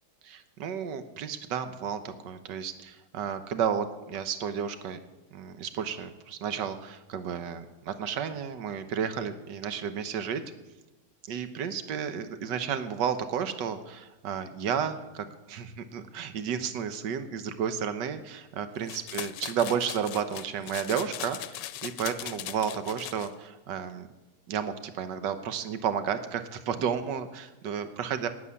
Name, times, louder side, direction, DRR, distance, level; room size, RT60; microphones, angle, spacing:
voice 1, 0.2-5.0 5.3-10.4 11.3-24.1 24.5-28.3, right 7 dB, 80° right, 10 dB, 1.6 m, -32 dB
sound 1, 18.9-23.3, left 13 dB, 85° left, 1.3 m, -39 dB
11.0 x 8.5 x 9.6 m, 1.0 s
omnidirectional pair, 1.9 m